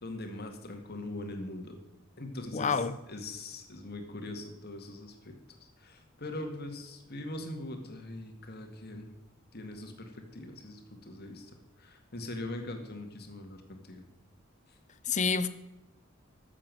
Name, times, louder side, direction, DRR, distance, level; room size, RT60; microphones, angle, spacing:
voice 1, 0.0-1.8 2.2-2.8 3.1-5.4 5.8-9.1 9.5-11.5 11.8-14.0 14.7-14.8, left 1 dB, 50° left, 2.1 m, -41 dB
voice 2, 2.5-3.0 15.0-15.5, left 5 dB, 35° left, 0.7 m, -28 dB
12.5 x 7.4 x 7.8 m
head